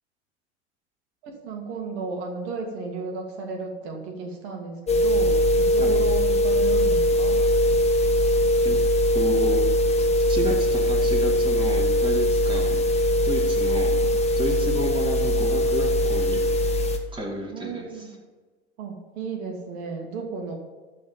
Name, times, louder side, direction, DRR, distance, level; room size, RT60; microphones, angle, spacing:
voice 1, 1.2-7.4 13.8-14.2 17.5-18.1 18.8-20.5, right 4 dB, 65° right, 3 dB, 2.0 m, -34 dB
sound 1, 4.9-17.0, left 1 dB, 20° left, 1.3 m, -21 dB
voice 2, 9.1-9.6 10.3-12.8 13.2-14.0 14.4-16.4 17.1-18.1, equal, 15° right, -1 dB, 2.7 m, -31 dB
12.5 x 4.3 x 7.2 m, 1.3 s
hypercardioid pair, 90°, 35 cm